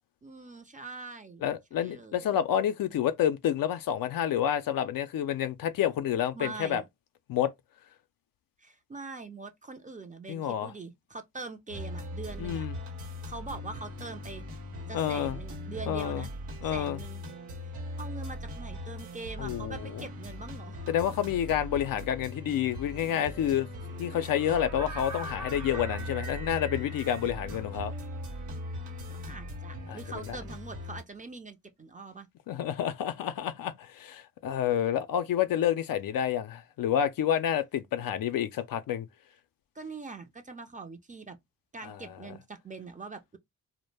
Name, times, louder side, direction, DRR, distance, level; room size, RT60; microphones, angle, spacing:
voice 1, 0.2-1.4 1.8-2.4 6.3-6.8 8.6-12.7 13.2-14.5 14.9-16.3 16.6-17.2 18.0-20.8 29.1-32.3 39.7-41.4 41.7-43.4, right 3 dB, 20° right, 0.5 m, -43 dB
voice 2, 1.4-6.8 7.3-7.5 10.3-10.7 12.4-12.8 14.9-15.4 15.9-16.3 16.6-17.0 19.4-20.1 20.9-23.7 24.0-27.9 29.9-30.0 30.3-30.4 32.5-39.1 41.8-42.2, left 10 dB, 60° left, 0.5 m, -29 dB
sound 1, 11.7-31.0, left 1 dB, 85° right, 0.9 m, -40 dB
sound 2, 23.8-30.7, right 2 dB, 50° right, 0.8 m, -45 dB
2.1 x 2.1 x 3.2 m
supercardioid pair, 50°, 39 cm